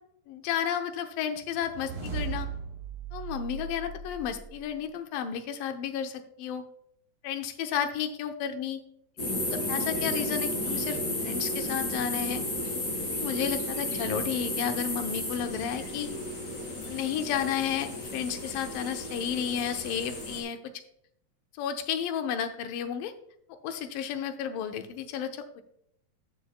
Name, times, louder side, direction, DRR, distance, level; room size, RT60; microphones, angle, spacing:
voice 1, 0.3-2.5 3.1-6.6 7.2-8.8 9.3-11.0 11.2-12.4 13.1-16.1 16.8-20.6 21.6-23.1 23.5-25.6, left 8 dB, 85° left, 7 dB, 2.6 m, -32 dB
sound 1, 1.4-4.7, right 5 dB, 30° right, 2.8 m, -37 dB
sound 2, 9.2-20.4, left 1 dB, 30° left, 3.0 m, -33 dB
14.5 x 6.8 x 2.2 m, 0.70 s
omnidirectional pair, 3.9 m